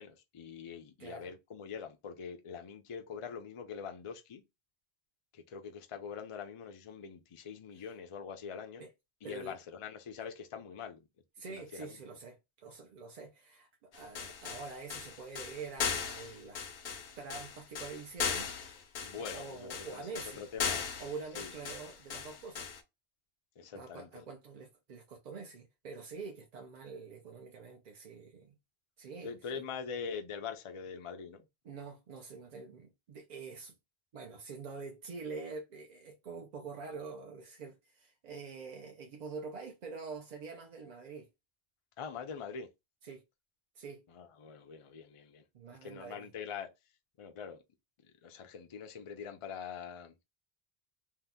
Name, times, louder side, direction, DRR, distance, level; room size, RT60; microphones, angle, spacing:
voice 1, 0.0-4.4 5.3-8.9 9.2-11.1 11.5-12.0 19.0-20.0 20.4-20.9 21.3-21.5 23.6-24.1 29.2-31.4 42.0-42.7 44.1-45.4 45.8-46.7 47.2-47.6 48.2-50.2, left 6 dB, 45° left, 0.4 m, -43 dB
voice 2, 1.0-1.3 7.7-7.8 8.8-8.9 9.2-9.6 11.4-16.7 17.2-18.5 19.1-20.4 21.0-22.7 23.7-28.5 29.0-29.6 31.6-33.7 34.1-41.3 43.0-43.2 43.8-44.1 45.5-46.3, right 4 dB, 55° right, 0.5 m, -46 dB
sound 1, 13.9-22.8, left 6 dB, 75° left, 0.9 m, -38 dB
2.7 x 2.0 x 3.5 m
omnidirectional pair, 1.0 m